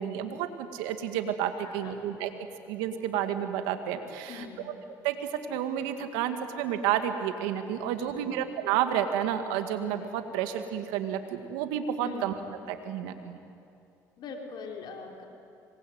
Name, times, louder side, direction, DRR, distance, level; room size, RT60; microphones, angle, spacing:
voice 1, 0.0-2.3 2.7-4.5 5.0-12.3 12.7-13.4, right 9 dB, 80° right, 7 dB, 2.2 m, -30 dB
voice 2, 1.6-2.1 4.3-4.7 8.0-8.3 12.0-12.3 14.2-15.3, left 5 dB, 65° left, 2 dB, 4.1 m, -42 dB
26.5 x 22.0 x 9.5 m, 2.6 s
hypercardioid pair, 65°, 8 cm